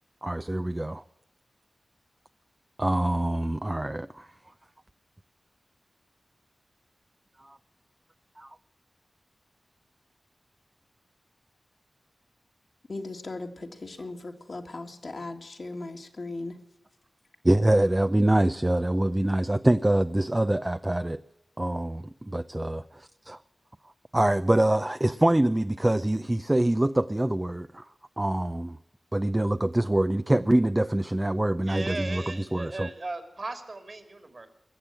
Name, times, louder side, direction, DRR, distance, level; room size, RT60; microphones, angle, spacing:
voice 1, 0.2-1.0 2.8-4.3 7.4-7.6 8.4-8.5 17.4-21.2 21.6-23.4 24.1-27.9 28.2-28.8 29.1-32.2 32.5-32.9, right 1 dB, 25° right, 10 dB, 0.5 m, -25 dB
voice 2, 12.9-16.6, left 2 dB, 60° left, 3 dB, 2.1 m, -38 dB
voice 3, 31.6-34.5, right 2 dB, 55° right, 8 dB, 2.7 m, -37 dB
21.5 x 7.5 x 8.8 m, 0.90 s
cardioid pair, 40°, 0 cm